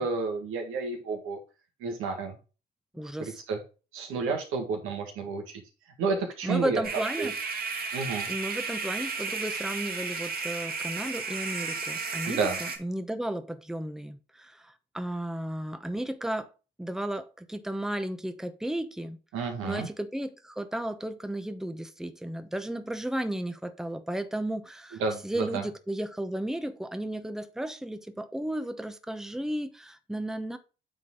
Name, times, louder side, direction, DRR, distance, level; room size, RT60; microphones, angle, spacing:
voice 1, 0.0-1.4 1.8-2.4 3.2-3.6 3.9-5.6 6.0-6.8 7.2-7.3 7.9-8.3 12.2-12.6 19.3-19.9 25.0-25.6, right 4 dB, 80° right, 1.8 m, -30 dB
voice 2, 2.9-3.4 6.4-7.4 8.3-16.5 16.8-19.2 19.6-30.6, right 1 dB, ahead, 0.9 m, -34 dB
sound 1, 6.8-12.8, right 4 dB, 45° right, 1.9 m, -33 dB
8.9 x 3.9 x 3.8 m
supercardioid pair, 65°, 21 cm